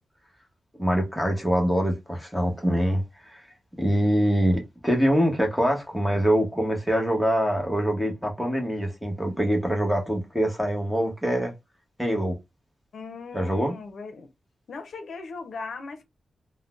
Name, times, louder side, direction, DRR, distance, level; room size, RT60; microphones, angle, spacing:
voice 1, 0.8-3.4 3.8-11.5 12.0-12.4 13.3-13.7, equal, ahead, 0.9 m, -24 dB
voice 2, 12.9-14.3 14.7-16.0, left 4 dB, 70° left, 0.6 m, -38 dB
3.8 x 2.1 x 2.4 m
wide cardioid pair, 160°, 0 cm